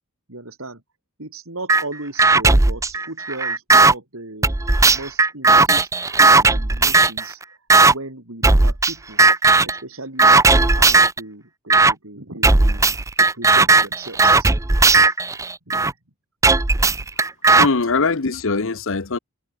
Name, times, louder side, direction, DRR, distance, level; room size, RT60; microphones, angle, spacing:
voice 1, 0.3-0.8 1.2-4.5 4.9-7.4 7.8-9.2 9.6-10.4 10.8-14.5 15.7-15.9 16.7-17.1, right 2 dB, 65° right, 4.0 m, -36 dB
sound 1, 1.7-1.8 2.2-3.9 4.4-7.2 7.7-7.9 8.4-8.9 9.2-9.8 10.2-11.2 11.7-11.9 12.4-15.9 16.4-17.7, right 3 dB, 15° right, 0.5 m, -15 dB
voice 2, 17.6-19.2, left 4 dB, 60° left, 1.0 m, -21 dB
head